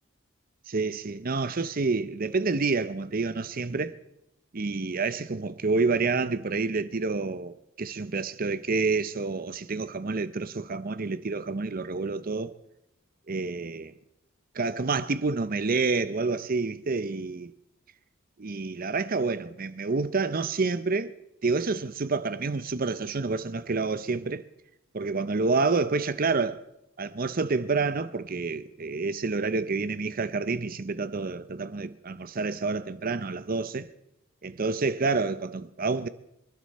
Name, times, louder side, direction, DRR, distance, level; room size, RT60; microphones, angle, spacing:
voice 1, 0.7-4.0 4.5-12.5 13.3-13.9 14.5-17.5 18.4-21.1 21.4-24.4 24.9-26.6 27.0-33.9 34.4-36.1, right 4 dB, 45° right, 0.7 m, -28 dB
27.0 x 12.0 x 4.2 m
head